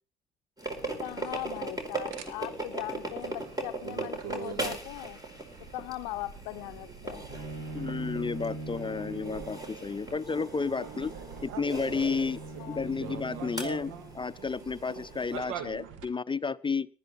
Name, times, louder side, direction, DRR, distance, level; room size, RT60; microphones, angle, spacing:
sound 1, 0.6-15.4, right 2 dB, 20° right, 4.6 m, -40 dB
sound 2, 0.6-16.1, right 7 dB, 75° right, 1.8 m, -45 dB
voice 1, 1.0-5.2 5.7-7.2 12.6-12.8, left 18 dB, 80° left, 7 dB, 0.6 m, -39 dB
Bowed string instrument, 7.3-14.4, right 2 dB, 50° right, 5.0 m, -43 dB
voice 2, 7.7-11.1 11.4-12.4 12.7-16.9, left 5 dB, 25° left, 15 dB, 0.7 m, -32 dB
19.0 x 12.0 x 4.2 m, 0.40 s
hypercardioid pair, 45°, 21 cm